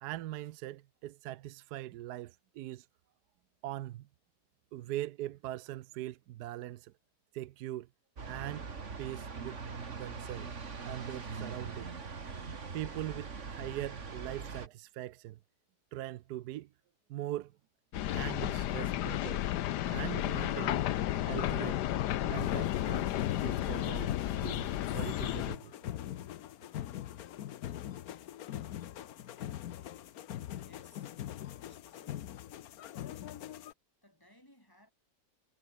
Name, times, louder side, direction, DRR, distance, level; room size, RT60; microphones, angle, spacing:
voice 1, 0.0-2.9 3.6-4.1 4.7-6.9 7.3-7.9 8.3-8.7 9.0-9.6 9.9-10.5 10.8-11.9 12.7-15.4 15.9-16.7 17.1-17.5 18.0-19.4 19.9-20.8 21.2-21.8 22.2-23.1 23.4-25.7, right 14 dB, 80° right, 1.2 m, -41 dB
sound 1, 8.2-14.7, right 5 dB, 45° right, 2.3 m, -42 dB
sound 2, 17.9-25.6, left 13 dB, 90° left, 1.4 m, -33 dB
sound 3, 22.4-33.7, left 12 dB, 65° left, 1.2 m, -42 dB
voice 2, 30.6-31.1 31.6-32.3 33.1-33.7 34.0-34.9, equal, 10° left, 6.9 m, -63 dB
omnidirectional pair, 1.7 m